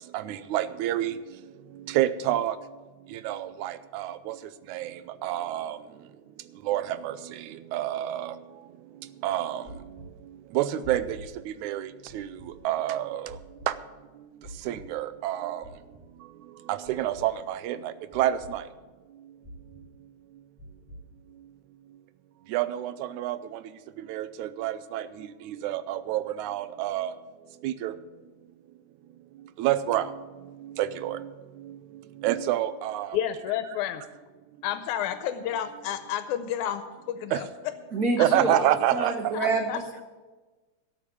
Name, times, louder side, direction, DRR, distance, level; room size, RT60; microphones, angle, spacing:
voice 1, 0.1-1.2 1.9-2.6 3.3-4.3 4.7-4.9 5.2-5.8 6.7-7.1 7.7-8.3 9.2-9.6 10.6-11.2 11.6-11.9 12.1-12.3 12.7-13.3 14.7-15.6 16.7-18.6 22.5-23.4 24.1-25.1 25.6-27.1 27.6-27.9 29.6-30.1 30.8-31.2 32.2-33.1 37.3-37.4 38.2-39.1, right 13 dB, 85° right, 14 dB, 2.0 m, -27 dB
sound 1, 9.6-10.0 10.8-11.2 12.1-12.5 13.3-13.6 14.4-14.8 15.6-16.0 16.8-17.2 18.1-18.5 19.4-19.8 20.6-21.0, equal, 5° right, 3.0 m, -45 dB
voice 2, 33.1-34.0 34.6-37.5 38.2-38.3 39.7-39.8, left 10 dB, 85° left, 9 dB, 2.1 m, -30 dB
voice 3, 37.9-40.0, right 2 dB, 60° right, 2 dB, 0.9 m, -28 dB
13.0 x 7.3 x 8.2 m, 1.3 s
omnidirectional pair, 3.4 m